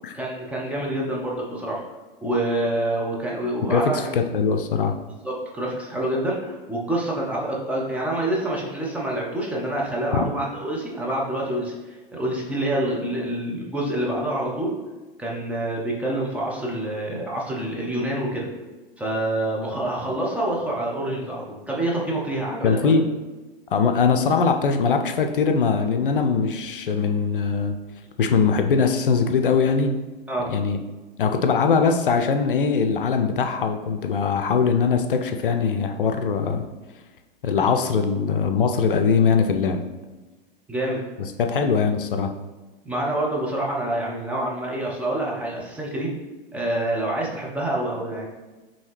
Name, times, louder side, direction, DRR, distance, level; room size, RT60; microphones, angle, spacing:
voice 1, 0.1-1.8 2.2-4.1 5.2-14.7 15.2-18.5 19.0-23.0 30.3-30.5 37.6-37.7 40.7-41.0 42.8-46.2 46.5-48.3, right 1 dB, 5° right, -4 dB, 0.8 m, -27 dB
voice 2, 3.7-4.9 10.1-10.2 22.6-23.0 23.7-27.7 28.2-29.9 30.5-30.8 31.2-36.6 37.4-39.8 41.4-42.3, left 5 dB, 65° left, 6 dB, 0.5 m, -21 dB
5.4 x 2.8 x 3.2 m, 1.2 s
figure-of-eight pair, 100°, 29 cm